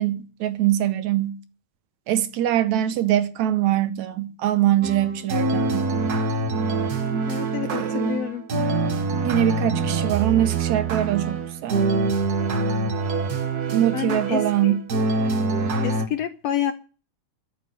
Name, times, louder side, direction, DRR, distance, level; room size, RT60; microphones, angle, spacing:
voice 1, 0.0-1.4 2.1-5.9 7.6-8.1 9.2-11.9 13.7-14.8, right 12 dB, 70° right, 2.0 m, -23 dB
sound 1, 4.8-16.1, right 3 dB, 50° right, 1.1 m, -25 dB
voice 2, 7.3-8.4 13.9-14.8 15.8-16.7, left 11 dB, 75° left, 1.5 m, -28 dB
13.5 x 7.0 x 8.9 m
omnidirectional pair, 3.7 m